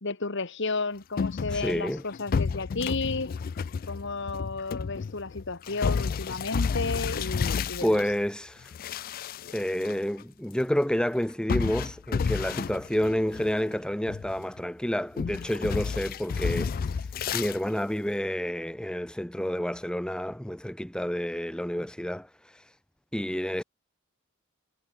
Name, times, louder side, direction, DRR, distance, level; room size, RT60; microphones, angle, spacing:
voice 1, 0.0-3.3 3.9-8.0, left 3 dB, 60° left, 1.9 m, -32 dB
sound 1, 1.2-8.1 8.6-9.9 10.2-10.3 11.5-13.7 14.1-14.6 15.2-17.6, left 5 dB, 45° left, 0.3 m, -31 dB
voice 2, 1.5-2.0 7.8-8.7 9.5-22.8 23.1-23.6, equal, 5° left, 0.8 m, -29 dB
head